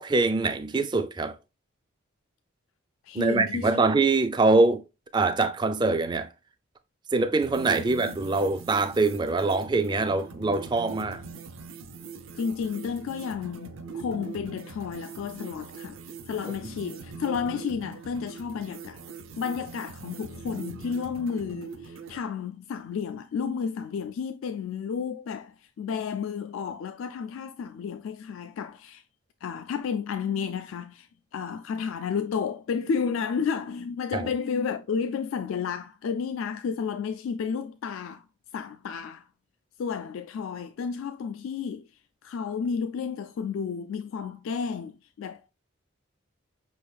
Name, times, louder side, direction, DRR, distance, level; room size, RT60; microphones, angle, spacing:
voice 1, 0.0-1.4 3.1-4.8 5.1-6.3 7.1-11.2 16.6-16.7 34.1-34.2, right 3 dB, 20° right, 0.4 m, -24 dB
voice 2, 3.0-3.8 7.8-8.1 12.4-16.0 16.3-19.0 19.4-29.0 29.4-31.1 31.3-38.2 38.5-39.2 39.8-41.9 42.2-45.5, left 6 dB, 75° left, 0.3 m, -32 dB
sound 1, 7.4-22.2, right 4 dB, 75° right, 0.6 m, -42 dB
5.3 x 3.5 x 2.3 m
head